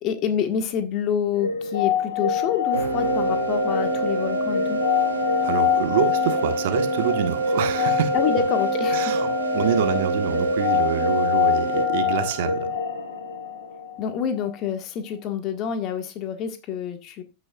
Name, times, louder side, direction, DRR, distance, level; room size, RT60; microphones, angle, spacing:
voice 1, 0.0-4.8 8.1-9.2 14.0-17.2, left 8 dB, 35° left, 1.6 m, -27 dB
sound 1, 1.4-14.1, left 7 dB, 65° left, 1.9 m, -25 dB
sound 2, 2.6-12.5, right 14 dB, 35° right, 1.8 m, -41 dB
sound 3, 2.7-11.9, right 3 dB, 75° right, 2.2 m, -27 dB
voice 2, 5.4-8.1 8.9-9.3 9.5-12.7, right 9 dB, 55° right, 1.5 m, -26 dB
15.0 x 6.1 x 2.4 m
figure-of-eight pair, 90°, 0 cm